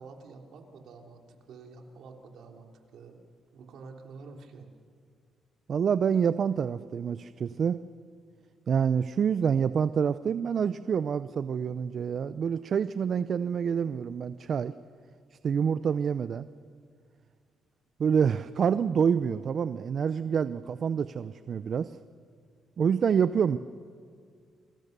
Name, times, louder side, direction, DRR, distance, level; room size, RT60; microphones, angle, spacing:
voice 1, 0.0-3.2 3.5-4.7, right 4 dB, 70° right, 2 dB, 3.5 m, -48 dB
voice 2, 5.7-7.8 8.7-14.7 15.4-16.5 18.0-22.0 22.8-23.6, right 7 dB, 55° right, 13 dB, 0.6 m, -27 dB
28.5 x 24.5 x 6.8 m, 2.1 s
cardioid pair, 90°, 0 cm